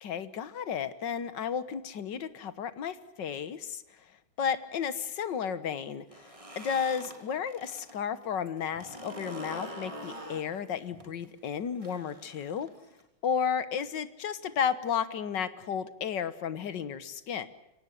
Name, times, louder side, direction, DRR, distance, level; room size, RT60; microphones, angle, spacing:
voice 1, 0.0-3.8 4.4-6.0 6.6-12.7 13.2-17.5, left 7 dB, 65° left, 14 dB, 1.8 m, -33 dB
sound 1, 6.0-7.9 8.2-13.0, equal, 15° right, 3.3 m, -45 dB
24.5 x 18.0 x 9.8 m, 0.92 s
omnidirectional pair, 2.2 m